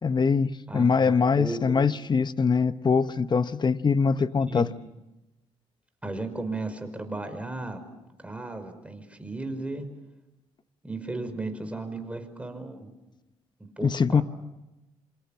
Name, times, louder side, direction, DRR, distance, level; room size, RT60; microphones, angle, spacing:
voice 1, 0.0-4.7 13.8-14.2, left 5 dB, 40° left, 1.0 m, -23 dB
voice 2, 0.7-1.9 4.5-4.6 6.0-7.8 8.2-9.9 10.8-12.9 13.6-14.2, right 2 dB, 10° right, 5.3 m, -35 dB
27.0 x 25.5 x 7.3 m
supercardioid pair, 65°, 12 cm